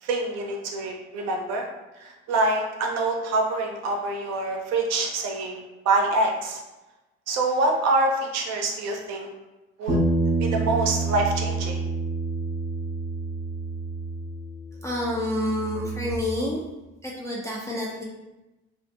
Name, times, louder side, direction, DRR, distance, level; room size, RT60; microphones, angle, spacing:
voice 1, 0.0-1.7 2.0-6.6 7.3-9.3 9.8-10.0 10.4-11.8, right 2 dB, 50° right, 2 dB, 0.5 m, -25 dB
Bass guitar, 9.9-14.6 14.9-16.1, right 3 dB, 90° right, 0.6 m, -28 dB
voice 2, 14.8-16.6 17.0-18.0, left 1 dB, 10° left, -5 dB, 0.3 m, -28 dB
2.4 x 2.4 x 2.4 m, 1.0 s
figure-of-eight pair, 50°, 35 cm